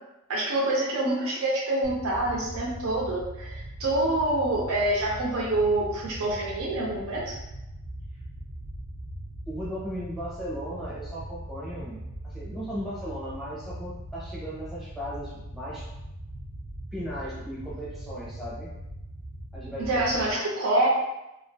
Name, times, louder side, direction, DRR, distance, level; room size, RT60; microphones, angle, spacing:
voice 1, 0.3-7.4 19.8-20.9, right 2 dB, 80° right, -4 dB, 0.6 m, -26 dB
sound 1, 1.8-20.3, right 1 dB, 40° right, 0.3 m, -40 dB
voice 2, 9.5-12.0 12.2-15.9 16.9-18.7 19.5-20.4, equal, ahead, -8 dB, 0.7 m, -37 dB
2.5 x 2.3 x 2.2 m, 0.90 s
head